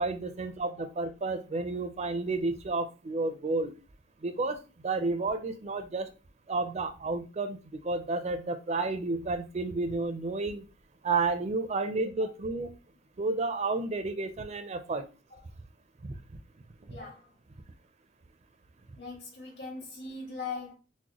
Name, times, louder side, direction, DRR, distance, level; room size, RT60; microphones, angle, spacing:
voice 1, 0.0-3.7 4.2-6.1 6.5-10.6 11.0-12.7 13.2-15.0 16.0-16.2, right 3 dB, 35° right, 0.5 m, -31 dB
voice 2, 16.9-17.3 19.0-20.8, left 4 dB, 60° left, 2.3 m, -40 dB
6.1 x 2.2 x 2.9 m
head